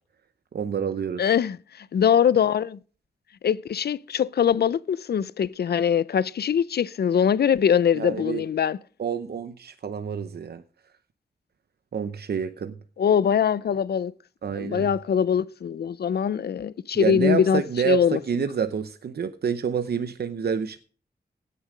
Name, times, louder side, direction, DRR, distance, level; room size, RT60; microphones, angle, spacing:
voice 1, 0.5-1.2 7.9-8.4 9.0-10.6 11.9-12.8 14.4-14.9 16.9-20.8, right 7 dB, 75° right, 0.7 m, -28 dB
voice 2, 1.2-2.8 3.4-8.8 13.0-14.1 14.6-18.2, left 8 dB, 75° left, 0.5 m, -22 dB
16.5 x 6.8 x 5.0 m
wide cardioid pair, 130°, 17 cm